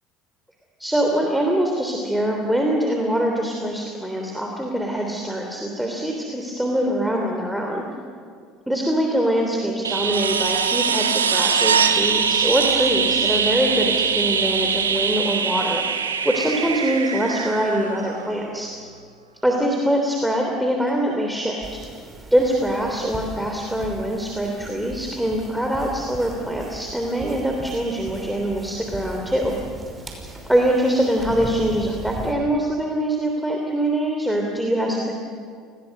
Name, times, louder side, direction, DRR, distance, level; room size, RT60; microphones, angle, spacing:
voice 1, 0.8-7.9 8.7-15.8 16.2-18.7 19.4-21.8 22.3-29.5 30.5-35.1, right 1 dB, 5° right, 1 dB, 3.3 m, -23 dB
sound 1, 9.8-18.5 20.9-21.0, right 6 dB, 85° right, 1.4 m, -22 dB
sound 2, 21.6-32.3, right 2 dB, 20° right, 5.6 m, -38 dB
29.5 x 20.0 x 6.7 m, 2.1 s
figure-of-eight pair, 65°, 0 cm